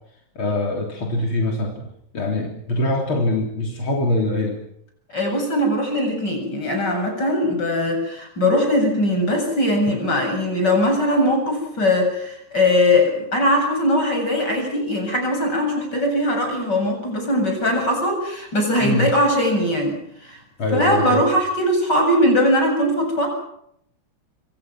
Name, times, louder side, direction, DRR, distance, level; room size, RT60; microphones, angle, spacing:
voice 1, 0.4-1.9 2.1-4.6 9.9-10.0 18.8-19.1 20.6-21.2, left 1 dB, 85° left, 0 dB, 4.4 m, -23 dB
voice 2, 5.1-20.0 20.2-20.4 20.7-23.3, left 1 dB, 55° left, 3 dB, 8.4 m, -20 dB
28.0 x 24.5 x 6.2 m, 0.75 s
omnidirectional pair, 2.2 m